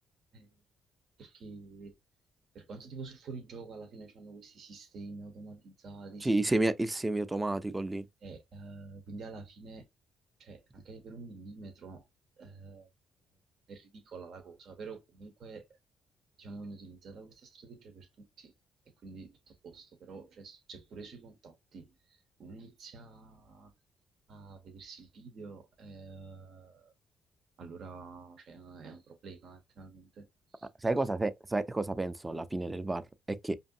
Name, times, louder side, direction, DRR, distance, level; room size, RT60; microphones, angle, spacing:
voice 1, 1.2-1.9 2.5-6.4 8.2-9.8 10.4-12.0 12.4-12.9 13.7-15.7 16.4-18.5 19.0-23.7 24.3-26.9 27.6-30.3 30.5-30.7, right 4 dB, 65° right, 0.9 m, -48 dB
voice 2, 6.2-8.0 30.8-33.6, right 2 dB, 20° right, 0.6 m, -31 dB
5.0 x 2.6 x 2.7 m
hypercardioid pair, 50°, 0 cm